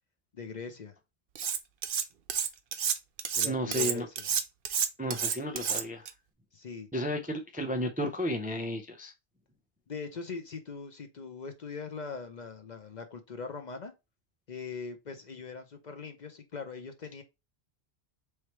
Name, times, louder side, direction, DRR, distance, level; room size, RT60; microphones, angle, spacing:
voice 1, 0.3-0.9 3.3-4.3 6.5-6.9 9.9-13.9 14.5-17.2, left 5 dB, 50° left, 0.6 m, -41 dB
Cutlery silverware, 1.4-2.0 2.3-6.1, right 7 dB, 60° right, 0.7 m, -30 dB
voice 2, 3.4-4.1 5.0-6.1 6.9-9.1, equal, 10° right, 0.4 m, -33 dB
4.6 x 3.2 x 3.0 m
omnidirectional pair, 1.1 m